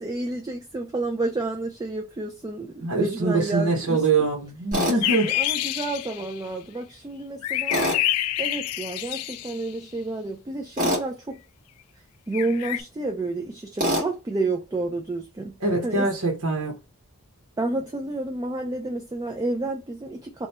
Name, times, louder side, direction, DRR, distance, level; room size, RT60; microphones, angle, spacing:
voice 1, 0.0-4.1 4.8-7.8 8.4-11.4 12.3-15.5 15.8-16.1 17.6-20.5, right 2 dB, 15° right, 0.3 m, -30 dB
voice 2, 2.8-5.3 15.6-16.8, right 3 dB, 85° right, 1.0 m, -24 dB
Tools, 4.7-5.0 7.7-8.0 10.8-11.1 13.8-14.1, equal, 40° right, 1.5 m, -24 dB
sound 1, 5.0-6.5 7.4-9.6 12.3-12.8, left 13 dB, 85° left, 0.3 m, -27 dB
3.0 x 2.2 x 4.1 m
head